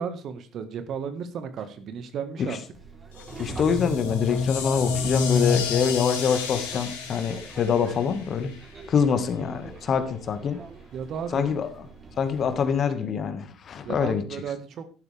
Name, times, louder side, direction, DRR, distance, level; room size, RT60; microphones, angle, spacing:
voice 1, 0.0-2.6 10.9-11.5 13.8-14.8, right 6 dB, 55° right, 10 dB, 1.7 m, -34 dB
Subway metro underground, 2.7-12.8, right 3 dB, 35° right, 3.9 m, -43 dB
sound 1, 3.1-9.0, left 7 dB, 80° left, 3.4 m, -36 dB
sound 2, 3.3-7.3, left 4 dB, 65° left, 1.3 m, -29 dB
voice 2, 3.4-8.5 8.9-10.6 11.3-11.7 12.2-14.2, left 7 dB, 45° left, 9 dB, 1.8 m, -25 dB
12.5 x 11.5 x 3.5 m, 0.38 s
hypercardioid pair, 60°, 0 cm